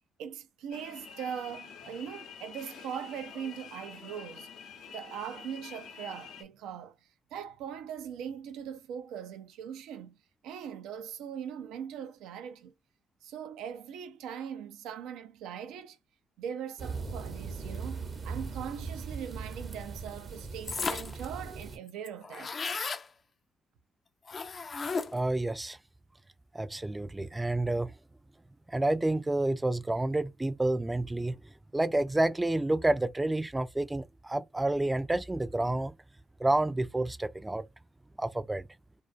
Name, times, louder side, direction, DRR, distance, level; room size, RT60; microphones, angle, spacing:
voice 1, 0.2-4.5 4.9-7.0 7.3-12.7 13.2-16.0 16.4-22.6, right 8 dB, 85° right, 0.4 m, -40 dB
sound 1, 0.7-6.4, left 6 dB, 85° left, 0.7 m, -47 dB
sound 2, 16.8-21.8, right 4 dB, 55° right, 0.8 m, -39 dB
sound 3, 20.7-21.2 21.6-21.7 21.9-23.1 24.3-25.3, left 4 dB, 50° left, 0.4 m, -34 dB
voice 2, 25.1-25.8 26.5-27.9 28.7-31.4 31.7-35.9 36.4-37.6 38.2-38.6, right 2 dB, 20° right, 0.4 m, -29 dB
2.3 x 2.3 x 2.4 m
supercardioid pair, 50°, 0 cm